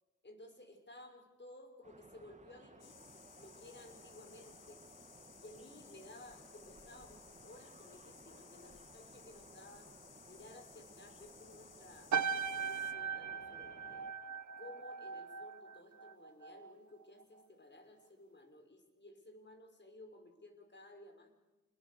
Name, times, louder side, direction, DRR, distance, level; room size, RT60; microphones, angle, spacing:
voice 1, 0.2-3.0 3.3-4.8 5.4-9.9 10.2-14.1 14.6-21.3, left 2 dB, 35° left, 5 dB, 5.8 m, -56 dB
sound 1, 1.8-14.1, right 2 dB, 25° right, 2.1 m, -59 dB
sound 2, 2.8-12.9, left 8 dB, 85° left, 1.2 m, -60 dB
sound 3, 12.1-16.7 17.0-17.4, right 6 dB, 65° right, 0.9 m, -39 dB
28.5 x 20.5 x 6.9 m, 1.1 s
cardioid pair, 55°, 31 cm